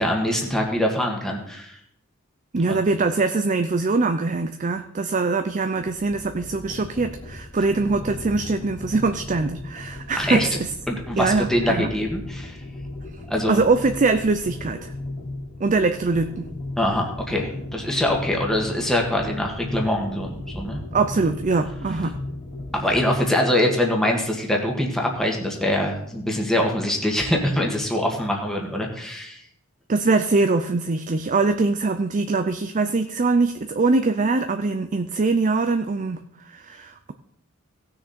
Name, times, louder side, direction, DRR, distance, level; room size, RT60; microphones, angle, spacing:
voice 1, 0.0-1.8 2.7-2.8 10.2-10.5 10.9-12.6 13.3-13.6 16.8-20.8 22.7-29.4, left 1 dB, ahead, 0 dB, 1.7 m, -24 dB
voice 2, 2.5-10.5 11.2-11.9 13.5-14.9 15.6-16.5 20.9-22.2 29.9-37.1, right 3 dB, 35° right, 8 dB, 0.5 m, -22 dB
sound 1, 5.8-23.2, left 2 dB, 35° left, 1.3 m, -36 dB
17.0 x 6.5 x 4.3 m, 0.71 s
head